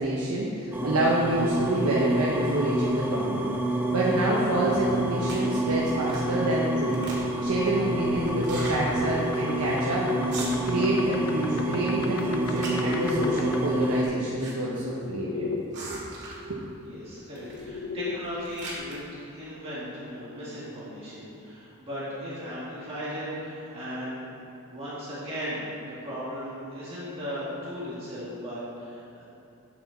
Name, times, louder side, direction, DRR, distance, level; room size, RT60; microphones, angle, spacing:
voice 1, 0.0-3.4 3.9-10.1 10.3-15.5 15.8-16.0 16.4-16.6, right 1 dB, 75° right, -6 dB, 1.1 m, -27 dB
sound 1, 0.7-14.0, right 1 dB, 10° right, 0.6 m, -28 dB
sound 2, 5.2-5.5 6.0-6.4 6.7-7.5 8.4-8.8 9.3-9.4 9.6-9.8 10.2-10.9 11.3-11.8 12.1-13.2 13.9-14.5 14.8-14.9 15.7-16.5 17.4-17.7 18.1-19.0, right 2 dB, 50° right, 2.2 m, -39 dB
sound 3, 7.7-15.6 16.9-18.2, left 4 dB, 85° left, 0.6 m, -37 dB
voice 2, 16.8-24.2 24.7-29.3, equal, 25° right, -10 dB, 2.2 m, -37 dB
8.2 x 8.1 x 4.2 m, 2.9 s
head